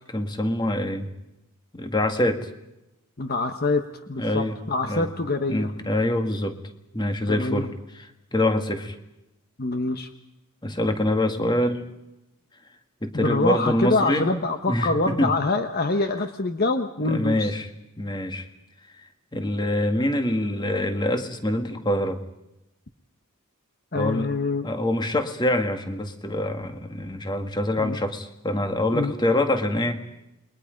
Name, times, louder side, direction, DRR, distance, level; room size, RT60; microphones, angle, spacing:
voice 1, 0.1-1.1 1.7-2.5 4.2-4.6 4.9-5.1 5.5-6.6 6.9-9.0 10.6-11.8 13.0-14.3 14.7-15.3 17.0-17.7 18.0-18.5 19.3-22.2 23.9-24.3 24.6-30.0, left 1 dB, 20° left, 7 dB, 1.9 m, -25 dB
voice 2, 3.2-5.7 7.3-7.7 9.6-10.1 13.1-17.5 23.9-24.7 27.8-28.0 28.9-29.1, left 3 dB, 45° left, 8 dB, 1.1 m, -25 dB
29.5 x 22.5 x 5.2 m, 0.91 s
head